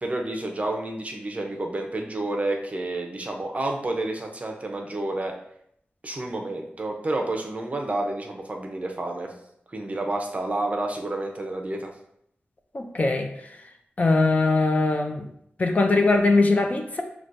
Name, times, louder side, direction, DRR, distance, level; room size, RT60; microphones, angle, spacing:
voice 1, 0.0-5.3 6.0-9.3 9.7-11.9, right 2 dB, 35° right, 2 dB, 0.6 m, -29 dB
voice 2, 12.7-13.3 14.0-15.3 15.6-17.0, left 3 dB, 40° left, 4 dB, 0.4 m, -21 dB
5.9 x 2.3 x 2.5 m, 0.72 s
wide cardioid pair, 110°, 4 cm